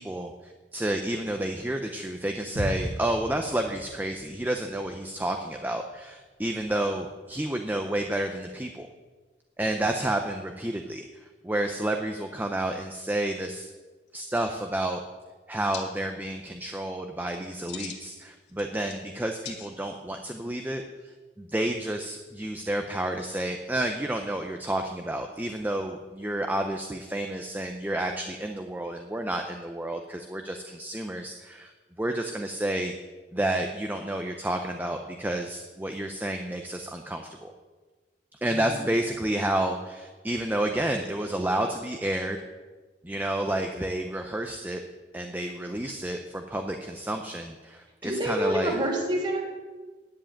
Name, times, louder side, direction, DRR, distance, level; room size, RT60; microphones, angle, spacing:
voice 1, 0.0-8.9 9.6-11.1 11.4-13.7 14.1-15.0 15.5-20.8 21.4-31.7 32.0-32.9 33.3-37.5 38.4-42.4 43.0-44.8 45.1-48.7, right 1 dB, 10° right, 4 dB, 0.6 m, -30 dB
sound 1, 2.6-6.5 6.8-6.9, equal, 90° right, 2.4 m, -38 dB
sound 2, 14.1-14.2 14.3-14.9 15.7-15.8 17.4-18.1 18.5-19.1 19.4-20.0, left 7 dB, 70° left, 1.8 m, -41 dB
voice 2, 38.4-38.8 48.0-49.4, right 1 dB, 25° right, 0 dB, 2.7 m, -28 dB
10.5 x 7.5 x 8.8 m, 1.3 s
head